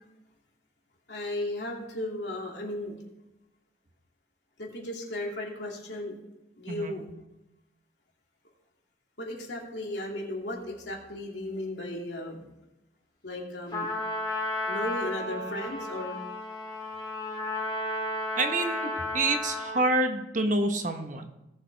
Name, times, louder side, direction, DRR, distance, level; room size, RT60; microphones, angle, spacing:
voice 1, 1.1-3.0 4.6-6.2 6.6-7.1 9.2-12.4 13.2-13.9 14.7-16.2, left 1 dB, 75° left, -1 dB, 2.6 m, -35 dB
Trumpet, 13.7-19.9, left 1 dB, 25° left, 3.1 m, -33 dB
voice 2, 18.4-21.3, right 2 dB, 45° right, 6 dB, 1.1 m, -27 dB
17.5 x 7.3 x 3.5 m, 0.93 s
head